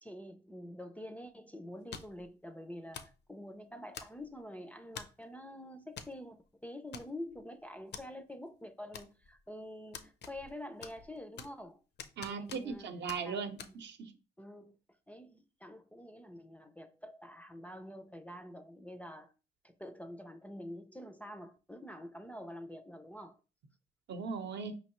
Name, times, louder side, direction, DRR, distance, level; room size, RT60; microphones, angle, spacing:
voice 1, 0.0-11.8 12.3-12.9 13.2-13.7 14.4-14.8 15.1-19.3 19.6-23.4, left 1 dB, 5° left, 0.4 m, -47 dB
sound 1, 1.9-2.3 2.9-3.2 3.9-4.4 5.0-5.2 6.0-6.2 6.4-6.5 6.9-7.4 7.9-8.1 8.9-9.4 9.9-10.5 10.8-11.6 12.0-12.8 13.1-13.2 13.6-13.7, left 6 dB, 60° left, 0.6 m, -47 dB
voice 2, 12.2-14.1 24.1-24.7, right 5 dB, 65° right, 0.7 m, -38 dB
5.2 x 3.1 x 3.0 m
cardioid pair, 90°, 20 cm